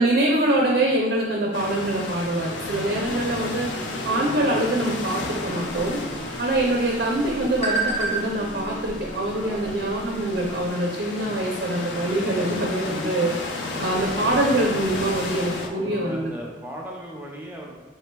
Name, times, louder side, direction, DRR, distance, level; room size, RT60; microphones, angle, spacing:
voice 1, 0.0-6.0 6.4-16.2, right 1 dB, 65° right, -1 dB, 0.5 m, -24 dB
sound 1, 1.5-15.7, left 2 dB, 80° left, 0.5 m, -33 dB
sound 2, 3.5-11.7, right 1 dB, 65° left, 0.8 m, -42 dB
sound 3, 5.6-10.7, right 3 dB, 35° left, 0.7 m, -33 dB
voice 2, 6.0-6.4 9.4-10.5 13.4-14.4 15.6-17.7, equal, 10° right, -1 dB, 0.4 m, -39 dB
4.3 x 3.3 x 2.2 m, 1.3 s
head